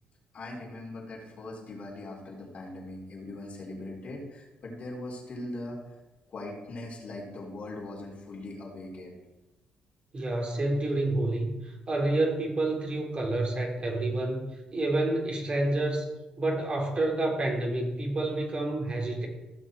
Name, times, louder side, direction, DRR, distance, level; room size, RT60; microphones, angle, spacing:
voice 1, 0.3-5.9 6.3-9.1, left 2 dB, 55° left, -2 dB, 4.2 m, -40 dB
voice 2, 10.1-16.1 16.4-19.3, right 2 dB, 40° right, -1 dB, 3.5 m, -29 dB
15.5 x 6.3 x 4.7 m, 1.0 s
supercardioid pair, 65°, 3 cm